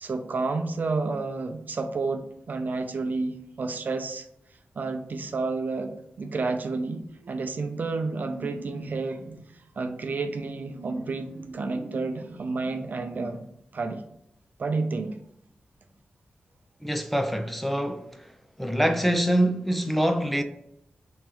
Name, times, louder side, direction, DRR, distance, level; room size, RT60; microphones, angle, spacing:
voice 1, 0.0-4.3 4.8-9.2 9.8-13.4 13.7-14.0 14.6-15.2, right 3 dB, 55° right, 0.5 m, -30 dB
sound 1, 7.1-9.5 10.2-13.4, right 2 dB, 90° right, 0.7 m, -43 dB
voice 2, 16.8-18.1 18.6-20.4, equal, 5° left, 0.4 m, -24 dB
3.5 x 3.1 x 4.5 m
wide cardioid pair, 95°, 4 cm